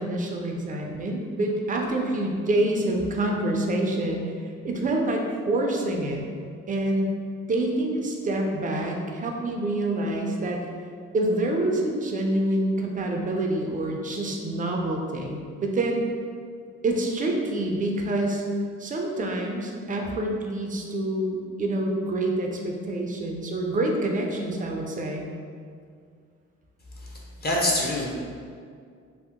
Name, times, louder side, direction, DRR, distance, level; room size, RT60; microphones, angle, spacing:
voice 1, 0.0-4.2 4.6-6.2 6.7-7.1 7.5-10.6 11.1-16.0 16.8-18.4 18.8-25.3, right 1 dB, 25° right, 1 dB, 0.4 m, -27 dB
voice 2, 27.0-28.1, left 1 dB, 30° left, -4 dB, 0.7 m, -26 dB
2.8 x 2.0 x 3.5 m, 2.2 s
cardioid pair, 90°, 30 cm